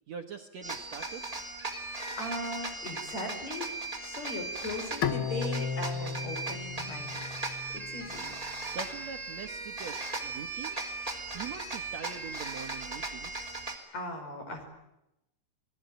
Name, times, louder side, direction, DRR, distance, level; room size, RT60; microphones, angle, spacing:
voice 1, 0.1-1.3 8.0-8.1 8.7-10.8 11.3-13.6, right 7 dB, 60° right, 5 dB, 2.0 m, -43 dB
sound 1, 0.6-13.8, right 3 dB, 10° right, 2.6 m, -38 dB
voice 2, 2.2-3.7 4.0-7.2 7.7-8.3 13.9-14.6, left 1 dB, 45° left, 4 dB, 6.2 m, -38 dB
Bowed string instrument, 5.0-8.2, left 6 dB, 80° left, 1.1 m, -34 dB
28.5 x 20.0 x 9.2 m, 0.88 s
omnidirectional pair, 4.2 m